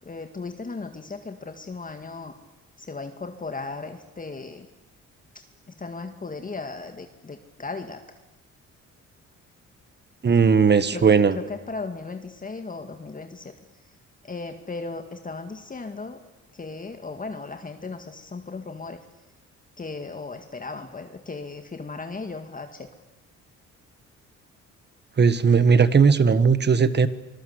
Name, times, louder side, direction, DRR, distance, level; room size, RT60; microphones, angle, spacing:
voice 1, 0.0-2.4 2.8-4.7 5.3-8.0 10.3-10.4 10.9-13.5 13.8-13.9 14.2-16.2 16.5-19.0 19.8-22.9, left 3 dB, 25° left, 6 dB, 1.9 m, -36 dB
voice 2, 10.2-11.4 25.2-27.1, right 5 dB, 35° right, 14 dB, 1.5 m, -17 dB
25.5 x 20.0 x 8.1 m, 1.0 s
cardioid pair, 90°, 30 cm